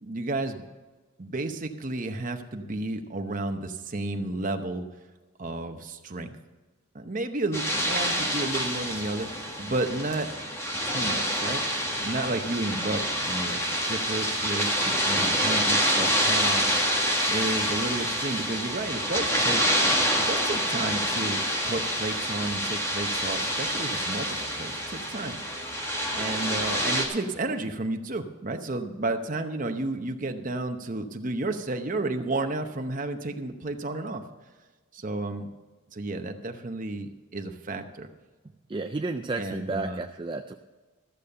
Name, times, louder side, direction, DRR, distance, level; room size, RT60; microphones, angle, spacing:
voice 1, 0.0-0.6 1.2-4.8 5.4-6.4 6.9-9.3 9.6-10.3 10.8-11.6 12.0-16.8 17.3-19.6 20.2-25.4 26.2-34.2 34.9-35.5 35.9-38.1 39.4-40.0, right 2 dB, 40° right, 6 dB, 0.9 m, -32 dB
sound 1, 7.5-27.1, equal, 15° left, 1.6 m, -27 dB
voice 2, 38.7-40.5, right 3 dB, 25° right, 6 dB, 0.3 m, -32 dB
14.0 x 7.0 x 6.7 m, 1.3 s
head